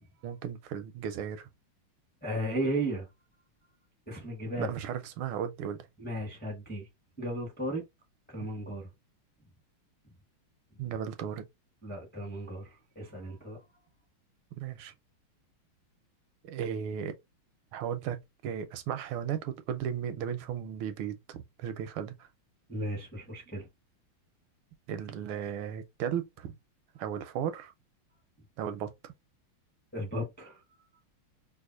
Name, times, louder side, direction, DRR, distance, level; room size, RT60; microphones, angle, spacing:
voice 1, 0.2-1.5 4.6-5.9 10.8-11.4 14.6-14.9 16.4-17.2 17.7-22.3 24.9-26.5 27.0-27.7 28.6-29.1, right 8 dB, 80° right, 1.4 m, -35 dB
voice 2, 2.2-3.1 4.1-4.7 6.0-6.9 7.2-7.9 8.3-8.9 11.8-13.6 22.7-23.7 29.9-30.6, right 1 dB, 10° left, 0.7 m, -35 dB
4.7 x 2.4 x 2.4 m
omnidirectional pair, 2.3 m